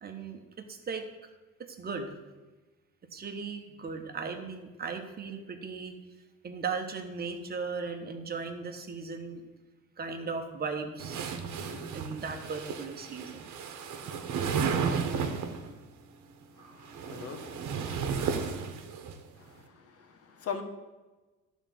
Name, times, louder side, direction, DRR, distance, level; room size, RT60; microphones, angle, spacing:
voice 1, 0.0-1.1 1.8-2.1 3.1-5.9 6.4-9.5 10.0-13.5, right 5 dB, 30° right, 5 dB, 1.3 m, -37 dB
sound 1, 11.0-15.7 16.7-19.2, right 6 dB, 60° right, 1.2 m, -33 dB
voice 2, 16.6-18.1 19.4-20.6, left 6 dB, 50° left, 6 dB, 1.4 m, -42 dB
12.0 x 4.1 x 7.6 m, 1.2 s
cardioid pair, 125°, 31 cm